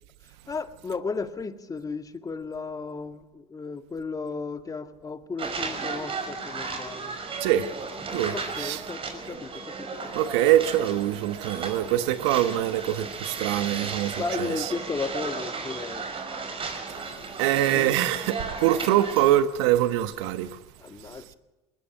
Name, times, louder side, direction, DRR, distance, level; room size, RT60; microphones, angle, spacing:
voice 1, 0.5-7.1 8.3-9.0 9.3-9.9 14.2-16.1 17.7-17.9 20.8-21.2, left 4 dB, 25° left, 1.8 m, -34 dB
sound 1, 5.4-19.4, right 4 dB, 40° right, 5.4 m, -35 dB
voice 2, 7.4-7.7 8.1-8.8 10.1-14.7 17.4-20.6 21.1-21.2, right 13 dB, 75° right, 1.3 m, -24 dB
20.5 x 20.0 x 6.6 m
hypercardioid pair, 75°, 15 cm